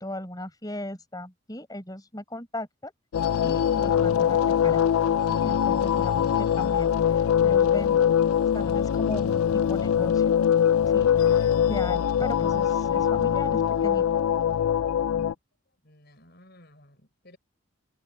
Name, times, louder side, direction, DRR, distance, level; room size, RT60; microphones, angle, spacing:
voice 1, 0.0-2.9 3.4-4.4 4.6-4.8 5.3-8.1 8.5-10.4 10.9-14.1, left 1 dB, 20° left, 5.4 m, -37 dB
sound 1, 3.1-15.3, left 9 dB, 90° left, 0.4 m, -23 dB
voice 2, 15.8-17.4, left 1 dB, 50° left, 5.7 m, -55 dB
head